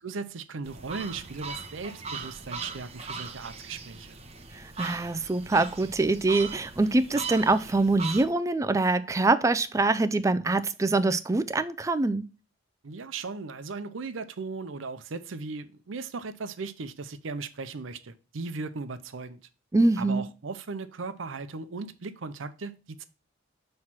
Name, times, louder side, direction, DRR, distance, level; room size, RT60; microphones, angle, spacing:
voice 1, 0.0-4.2 12.8-19.4 20.0-23.0, right 4 dB, 85° right, 0.6 m, -37 dB
sound 1, 0.6-8.2, right 4 dB, 35° right, 0.7 m, -39 dB
voice 2, 4.5-12.3 19.7-20.3, right 2 dB, 15° right, 0.3 m, -24 dB
6.0 x 3.2 x 5.7 m
head